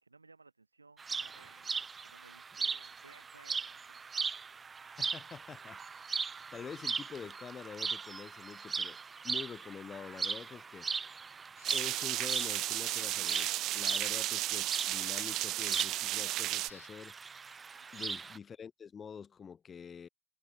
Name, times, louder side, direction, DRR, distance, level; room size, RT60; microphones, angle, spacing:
voice 1, 0.0-4.0 17.8-18.1, right 3 dB, 90° right, 1.7 m, -60 dB
sound 1, 1.0-18.4, right 5 dB, 20° right, 1.0 m, -39 dB
voice 2, 5.0-5.8 6.1-9.0 9.2-10.9 11.7-17.1 17.9-20.1, left 7 dB, 25° left, 1.4 m, -46 dB
sound 2, 11.6-16.9, left 9 dB, 75° left, 1.4 m, -56 dB
sound 3, 11.6-16.7, right 16 dB, 40° right, 0.4 m, -34 dB
figure-of-eight pair, 90°, 0 cm